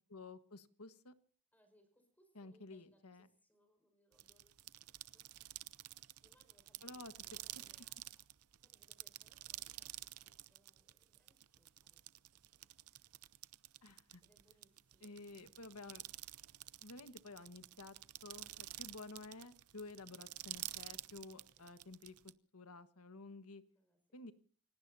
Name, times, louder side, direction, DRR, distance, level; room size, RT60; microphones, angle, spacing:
voice 1, 0.1-1.1 2.3-3.3 6.8-7.1 13.8-14.2 15.0-16.0 16.8-17.9 18.2-23.6 24.1-24.3, left 3 dB, 85° left, 10 dB, 1.5 m, -52 dB
voice 2, 1.5-5.3 6.0-8.2 8.6-13.1 14.2-15.2 21.2-21.7 23.7-24.0, equal, 10° left, 7 dB, 5.6 m, -75 dB
sound 1, 4.1-22.3, right 16 dB, 80° right, 0.7 m, -50 dB
29.5 x 17.5 x 2.8 m, 0.43 s
head